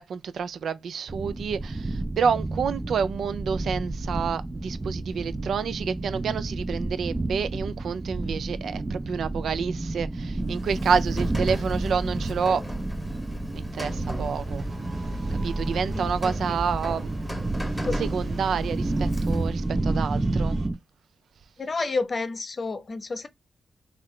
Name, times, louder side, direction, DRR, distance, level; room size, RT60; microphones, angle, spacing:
voice 1, 0.0-12.6 13.5-14.6 15.4-17.2 18.0-20.6, right 6 dB, 90° right, 0.4 m, -28 dB
sound 1, 1.1-20.7, right 2 dB, 25° right, 0.4 m, -30 dB
Rain, 10.4-19.7, left 1 dB, 5° left, 1.0 m, -39 dB
sound 2, 13.9-20.7, right 3 dB, 65° right, 1.1 m, -42 dB
voice 2, 15.9-16.6 17.6-18.0 21.6-23.3, left 3 dB, 45° left, 0.6 m, -31 dB
3.2 x 2.4 x 3.6 m
cardioid pair, 90°, 0 cm